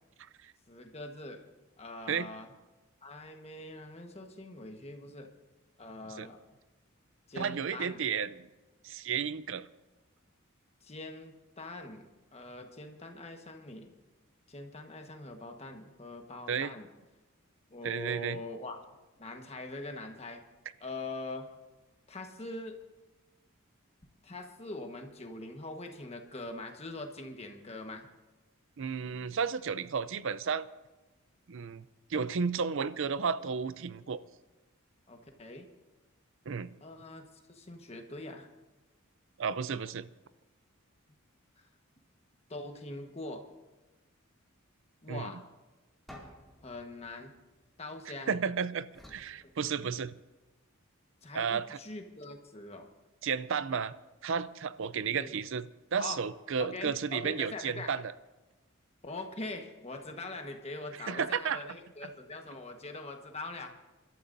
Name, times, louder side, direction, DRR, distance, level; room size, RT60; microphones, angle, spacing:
voice 1, 0.7-1.4 1.8-2.5 3.0-5.3 5.8-6.4 7.3-8.0 10.8-13.9 14.5-16.9 17.7-18.9 19.2-20.4 20.8-21.5 22.1-22.8 24.2-28.1 35.1-35.7 36.8-38.5 42.5-43.4 45.0-45.4 46.6-47.3 47.8-48.4 49.4-49.5 51.2-52.9 55.1-55.3 56.0-56.2 56.6-57.9 59.0-63.7, left 2 dB, 30° left, 4 dB, 1.3 m, -43 dB
voice 2, 7.4-8.5 8.8-9.7 16.5-16.7 17.8-18.4 28.8-30.6 31.5-31.8 32.1-34.2 36.5-36.7 39.4-40.1 45.1-45.3 48.3-50.1 51.3-51.8 53.2-53.9 54.2-55.6 55.9-58.0 61.1-61.6, right 6 dB, 60° right, 15 dB, 0.5 m, -32 dB
sound 1, 46.1-48.3 48.9-50.3, equal, ahead, 2.3 m, -54 dB
28.0 x 12.5 x 2.7 m, 1.2 s
head